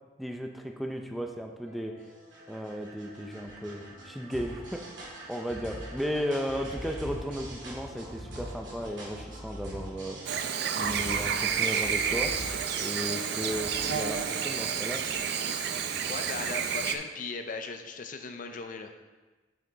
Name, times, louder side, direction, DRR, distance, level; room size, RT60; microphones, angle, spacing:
voice 1, 0.2-2.0 2.5-10.2 10.7-12.3 12.8-15.1, equal, ahead, 2 dB, 0.5 m, -35 dB
sound 1, 1.6-17.2, equal, 80° right, 2.5 m, -44 dB
Chirp tweet / Buzz, 10.3-17.0, right 7 dB, 65° right, 0.5 m, -30 dB
voice 2, 16.1-18.9, left 4 dB, 45° left, 7 dB, 0.5 m, -37 dB
7.7 x 5.6 x 3.9 m, 1.3 s
head